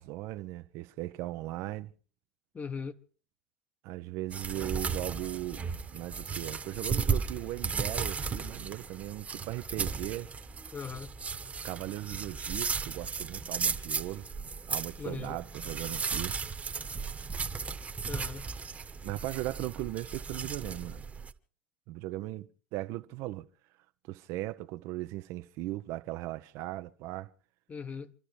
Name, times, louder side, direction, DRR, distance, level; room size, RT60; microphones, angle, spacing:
voice 1, 0.0-1.9 3.8-10.3 11.6-14.3 14.7-16.3 19.0-21.1 21.9-23.5 24.1-27.3, right 17 dB, 60° right, 0.7 m, -38 dB
voice 2, 2.5-3.0 10.7-11.1 15.0-15.4 18.1-18.5 27.7-28.1, left 6 dB, 25° left, 1.2 m, -39 dB
sound 1, 4.3-21.3, right 5 dB, 25° right, 1.2 m, -35 dB
27.5 x 13.0 x 3.3 m
hypercardioid pair, 80°, 6 cm